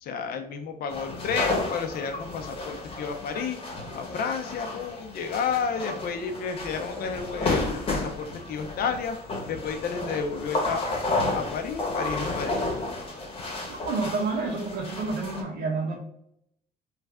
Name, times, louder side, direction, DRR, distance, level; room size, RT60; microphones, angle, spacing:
voice 1, 0.0-3.6 3.9-9.2 9.5-12.6, left 6 dB, 65° left, 6 dB, 0.7 m, -31 dB
sound 1, 0.9-15.4, left 2 dB, 30° left, 1.1 m, -32 dB
voice 2, 13.9-16.0, right 4 dB, 65° right, -2 dB, 0.8 m, -29 dB
3.3 x 2.4 x 3.5 m, 0.75 s
cardioid pair, 110°, 17 cm